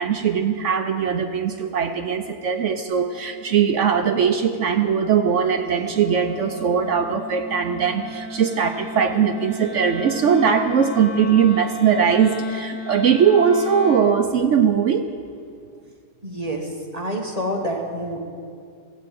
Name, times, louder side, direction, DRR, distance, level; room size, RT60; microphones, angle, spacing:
voice 1, 0.0-15.1, right 7 dB, 65° right, 7 dB, 0.8 m, -20 dB
Wind instrument woodwind instrument, 2.7-14.2, left 3 dB, 5° left, 3.7 m, -35 dB
voice 2, 16.2-18.2, equal, 25° right, 0 dB, 1.4 m, -28 dB
14.5 x 8.5 x 7.6 m, 2.3 s
omnidirectional pair, 1.7 m